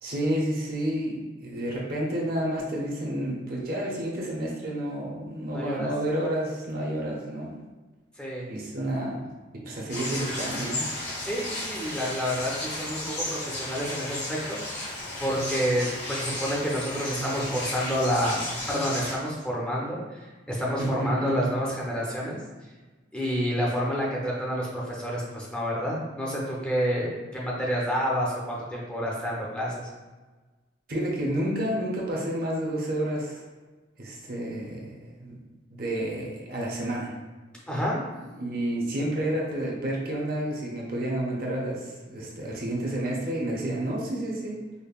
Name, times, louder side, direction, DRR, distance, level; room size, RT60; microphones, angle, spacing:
voice 1, 0.0-7.5 8.5-10.9 20.8-21.5 30.9-33.4 34.0-35.4 35.8-37.1 38.4-44.6, right 1 dB, 50° right, -3 dB, 0.7 m, -30 dB
voice 2, 5.5-5.9 8.2-8.5 11.2-14.9 15.2-22.4 23.1-29.9 37.7-38.0, equal, 5° left, -5 dB, 0.5 m, -29 dB
sound 1, 9.9-19.2, left 1 dB, 60° left, 1.2 m, -34 dB
5.2 x 2.1 x 2.4 m, 1.3 s
head